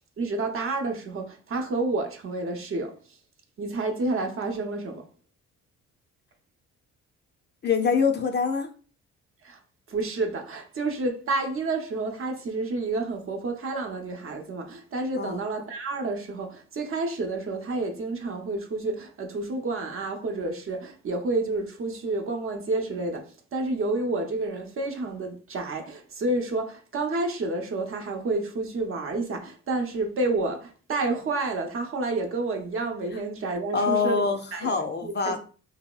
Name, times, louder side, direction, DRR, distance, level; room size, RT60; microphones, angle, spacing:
voice 1, 0.0-2.9 3.6-5.0 9.4-9.6 9.9-34.2 34.5-35.4, right 2 dB, 45° right, 0.6 m, -29 dB
voice 2, 7.6-8.7 15.2-15.4 33.7-35.4, left 5 dB, 35° left, 0.4 m, -25 dB
3.0 x 2.7 x 2.3 m
cardioid pair, 90°, 30 cm